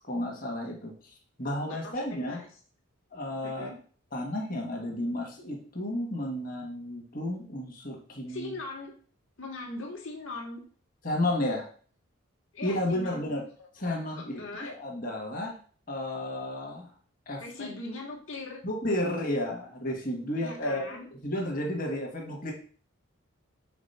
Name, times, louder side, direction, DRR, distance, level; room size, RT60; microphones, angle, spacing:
voice 1, 0.1-0.9 1.4-2.4 3.1-3.7 4.1-8.5 11.0-11.7 12.6-13.4 13.8-15.5 15.9-16.9 17.3-17.4 18.6-20.8 21.2-22.5, left 1 dB, 40° left, 0 dB, 1.5 m, -32 dB
voice 2, 1.6-2.5 3.4-3.8 8.3-8.9 9.4-10.6 12.5-13.3 13.6-13.7 14.1-14.7 17.4-18.6 20.4-21.1, left 2 dB, 65° left, -1 dB, 1.7 m, -40 dB
5.1 x 3.9 x 5.5 m, 0.43 s
head